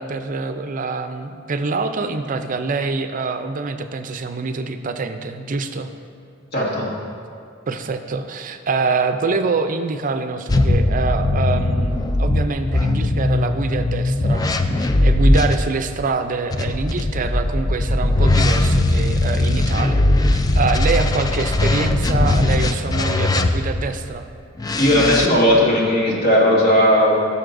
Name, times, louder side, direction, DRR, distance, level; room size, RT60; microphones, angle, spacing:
voice 1, 0.0-5.9 7.7-14.4 14.7-20.1 20.3-24.3, right 4 dB, 40° right, 8 dB, 0.5 m, -25 dB
voice 2, 6.5-6.9 24.8-27.1, equal, 50° left, -5 dB, 1.7 m, -16 dB
sound 1, 10.5-15.6 16.5-23.9 24.6-25.3, left 2 dB, 20° left, 0.3 m, -19 dB
15.0 x 6.7 x 2.6 m, 2.4 s
head